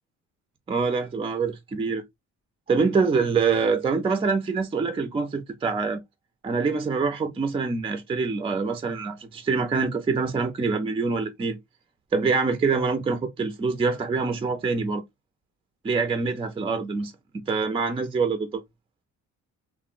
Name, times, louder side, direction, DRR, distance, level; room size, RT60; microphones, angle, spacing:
voice 1, 0.7-2.0 2.7-6.0 6.4-11.6 12.1-15.0 15.8-17.1 17.5-18.6, right 4 dB, 20° right, 0.4 m, -25 dB
2.9 x 2.0 x 2.3 m
cardioid pair, 90°, 30 cm